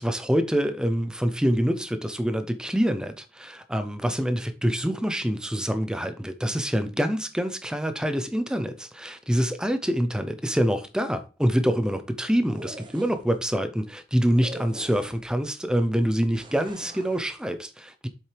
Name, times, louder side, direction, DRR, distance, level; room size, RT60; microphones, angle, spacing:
voice 1, 0.0-18.1, equal, 5° right, 0.5 m, -26 dB
sound 1, 12.4-13.4 14.3-15.4 16.3-17.3, right 1 dB, 25° right, 0.9 m, -43 dB
7.6 x 7.5 x 3.3 m
head